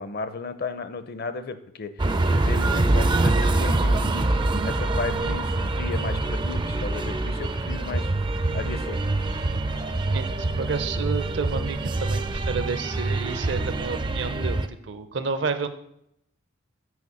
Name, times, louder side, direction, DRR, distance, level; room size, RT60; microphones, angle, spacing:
voice 1, 0.0-1.9 2.3-4.2 4.6-8.1 8.5-9.0, left 4 dB, 50° left, 11 dB, 0.6 m, -34 dB
sound 1, 2.0-14.7, right 2 dB, 25° right, 0.4 m, -25 dB
voice 2, 10.1-15.7, right 5 dB, 60° right, 10 dB, 0.7 m, -30 dB
6.4 x 5.3 x 7.0 m, 0.78 s
head